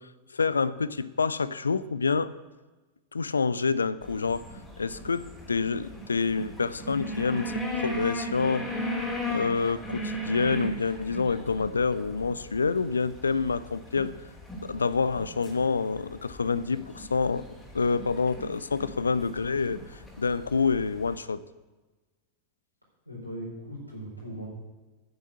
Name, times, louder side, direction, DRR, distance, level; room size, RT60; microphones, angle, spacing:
voice 1, 0.3-2.3 3.1-4.5 4.8-8.7 9.3-14.1 14.6-17.5 17.7-21.4, left 4 dB, 75° left, 17 dB, 0.4 m, -27 dB
sound 1, 4.0-21.2, equal, 10° left, 3.3 m, -38 dB
voice 2, 23.0-24.5, right 1 dB, 90° right, -4 dB, 4.7 m, -39 dB
9.7 x 7.2 x 8.4 m, 1.2 s
figure-of-eight pair, 90°, 0 cm